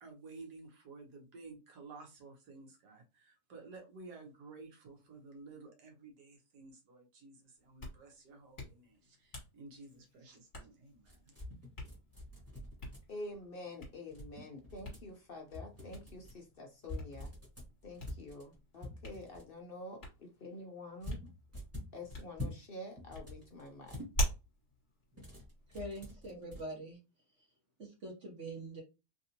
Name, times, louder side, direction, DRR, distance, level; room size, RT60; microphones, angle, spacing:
voice 1, 0.0-11.3, right 3 dB, 80° right, 1.6 m, -53 dB
Hands, 7.6-26.1, equal, 30° left, 1.4 m, -46 dB
sound 1, 11.0-13.3 14.1-15.1 15.5-16.4 16.8-19.5 21.0-22.6 22.9-24.1 25.1-26.6, left 1 dB, 10° right, 1.3 m, -46 dB
voice 2, 13.1-17.3 17.8-21.2 21.9-24.0, left 2 dB, 65° left, 0.5 m, -47 dB
voice 3, 25.7-27.0 27.4-27.5 27.8-28.8, right 1 dB, 50° right, 1.2 m, -44 dB
3.4 x 2.6 x 2.8 m
omnidirectional pair, 1.7 m